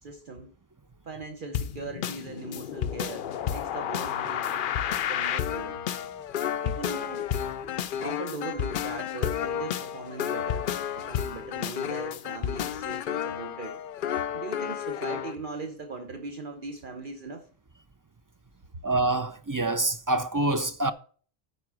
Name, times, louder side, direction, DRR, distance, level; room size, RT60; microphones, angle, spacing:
voice 1, 0.0-0.5 1.1-5.8 6.6-7.3 8.0-13.8 14.3-17.5, right 3 dB, 55° right, 1.0 m, -40 dB
sound 1, 1.5-15.4, left 9 dB, 60° left, 0.7 m, -31 dB
voice 2, 18.8-20.9, right 2 dB, 30° right, 0.4 m, -26 dB
9.6 x 4.8 x 6.1 m
omnidirectional pair, 1.1 m